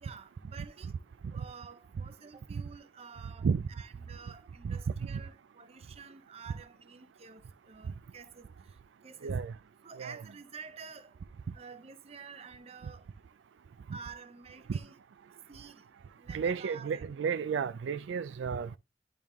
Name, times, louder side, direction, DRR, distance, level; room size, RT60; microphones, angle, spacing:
voice 1, 0.0-0.9 1.3-9.4 9.8-11.1 11.5-13.1 13.9-15.0 15.5-15.9 16.2-17.1, right 5 dB, 35° right, 0.5 m, -50 dB
voice 2, 9.2-9.5 10.0-10.2 13.9-14.0 14.7-14.8 16.3-18.8, right 6 dB, 85° right, 0.4 m, -32 dB
10.5 x 3.6 x 3.0 m
head